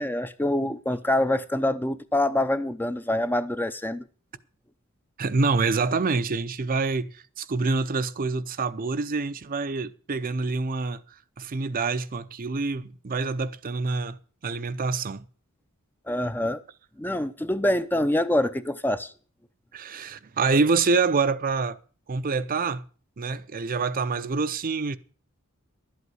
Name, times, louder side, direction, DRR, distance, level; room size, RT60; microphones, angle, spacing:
voice 1, 0.0-4.0 16.1-16.6 17.0-19.1, left 1 dB, 10° left, 0.5 m, -25 dB
voice 2, 5.2-11.0 11.4-14.2 14.4-15.3 19.7-21.8 22.1-22.8 23.2-25.0, right 4 dB, 40° right, 0.6 m, -26 dB
11.5 x 8.3 x 7.7 m
head